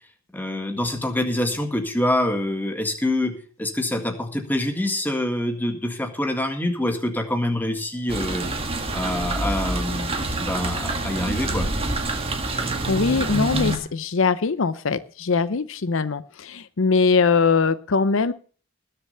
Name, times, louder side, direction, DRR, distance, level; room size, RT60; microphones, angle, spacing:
voice 1, 0.3-8.5 8.9-10.1 10.4-11.7, left 1 dB, 10° left, 5 dB, 1.8 m, -25 dB
sound 1, 8.1-13.8, right 2 dB, 25° right, 1.8 m, -26 dB
voice 2, 12.6-18.3, left 4 dB, 65° left, 14 dB, 0.6 m, -22 dB
20.0 x 6.8 x 5.5 m, 0.41 s
head